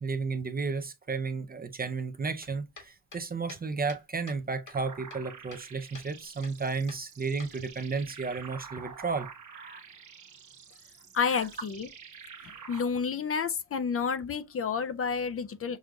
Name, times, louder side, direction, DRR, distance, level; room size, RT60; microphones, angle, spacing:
voice 1, 0.0-9.8 11.2-11.4, right 4 dB, 30° right, 0.4 m, -33 dB
sound 1, 2.4-4.4 4.7-5.7 5.9-6.1 6.4-6.6 6.9-7.9, left 4 dB, 65° left, 1.8 m, -49 dB
sound 2, 4.7-12.8, right 6 dB, 60° right, 0.9 m, -48 dB
voice 2, 11.1-11.9 12.7-15.8, left 6 dB, 45° left, 0.4 m, -30 dB
6.1 x 2.5 x 2.2 m
wide cardioid pair, 150°, 32 cm